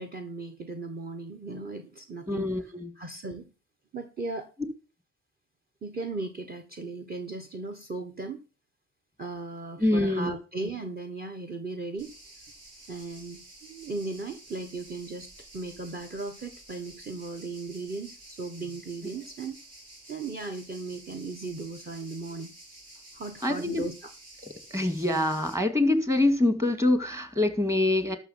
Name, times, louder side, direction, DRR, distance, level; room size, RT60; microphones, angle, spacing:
voice 1, 0.0-3.5 3.9-4.5 5.8-8.4 9.2-12.1 12.9-19.6 20.1-22.5 23.1-24.1, right 3 dB, 30° right, 1.5 m, -37 dB
voice 2, 2.3-2.9 9.8-10.3 23.4-23.8 24.7-28.2, left 2 dB, 10° right, 2.2 m, -25 dB
sound 1, 12.0-25.5, right 1 dB, 55° right, 6.0 m, -50 dB
12.5 x 6.5 x 5.7 m
cardioid pair, 90°, 30 cm